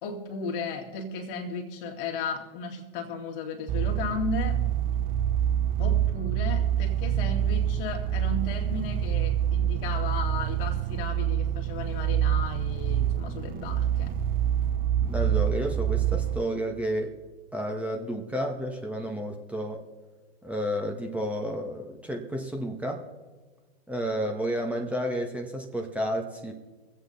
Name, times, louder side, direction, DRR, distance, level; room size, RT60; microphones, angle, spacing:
voice 1, 0.0-4.6 5.8-14.1, left 4 dB, 60° left, 1 dB, 2.3 m, -35 dB
sound 1, 3.7-16.4, right 10 dB, 30° right, 0.6 m, -26 dB
voice 2, 15.0-17.2 17.5-19.8 20.4-23.0 23.9-26.5, equal, 5° right, 2 dB, 1.6 m, -31 dB
24.0 x 8.3 x 4.1 m, 1.3 s
hypercardioid pair, 100°, 31 cm